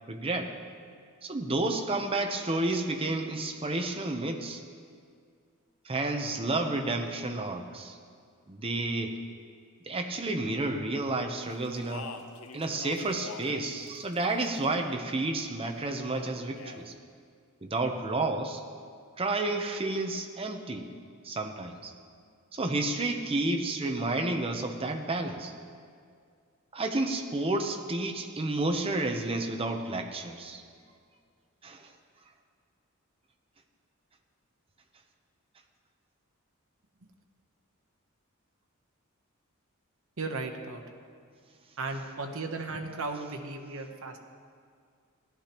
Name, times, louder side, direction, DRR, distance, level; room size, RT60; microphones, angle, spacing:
voice 1, 0.1-0.5 1.2-4.6 5.8-8.0 8.5-9.2 9.8-12.1 12.5-16.9 17.6-18.6 19.2-20.9 21.2-21.9 22.5-25.5 26.7-30.6 31.6-31.9, right 2 dB, 25° right, 4 dB, 0.8 m, -31 dB
Speech, 11.6-13.6 13.9-14.7 16.2-16.8, left 4 dB, 90° left, 0.7 m, -44 dB
voice 2, 40.2-40.8 41.8-44.2, right 3 dB, 75° right, 4 dB, 0.9 m, -35 dB
16.0 x 11.5 x 3.0 m, 2.2 s
head